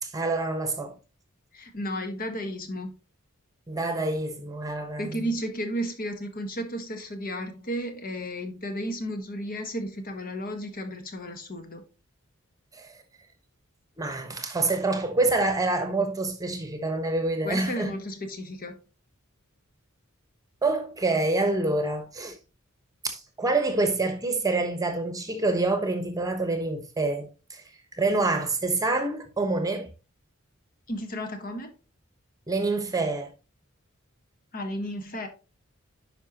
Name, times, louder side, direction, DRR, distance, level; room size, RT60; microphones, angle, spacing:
voice 1, 0.0-0.9 3.7-5.3 12.7-12.9 14.0-17.9 20.6-22.3 23.0-27.6 28.0-29.9 32.5-33.3, right 2 dB, 15° right, 1.1 m, -27 dB
voice 2, 1.5-2.9 5.0-11.8 17.4-18.8 30.9-31.7 34.5-35.3, equal, 45° left, 1.5 m, -33 dB
10.0 x 5.4 x 2.9 m
head